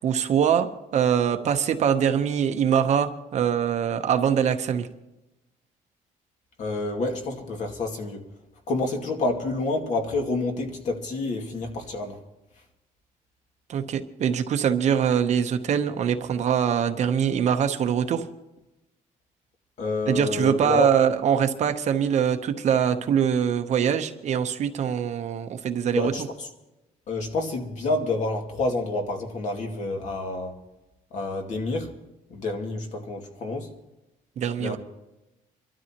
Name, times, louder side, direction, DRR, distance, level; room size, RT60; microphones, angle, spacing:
voice 1, 0.0-4.9 13.7-18.3 20.1-26.1 34.4-34.8, right 8 dB, 50° right, 0.9 m, -23 dB
voice 2, 6.6-8.3 8.7-12.2 19.8-20.9 26.0-26.5 27.1-30.6 31.1-31.9 32.3-33.7 34.6-34.8, left 2 dB, 55° left, 2.3 m, -28 dB
27.5 x 12.5 x 3.0 m
cardioid pair, 150°, 15 cm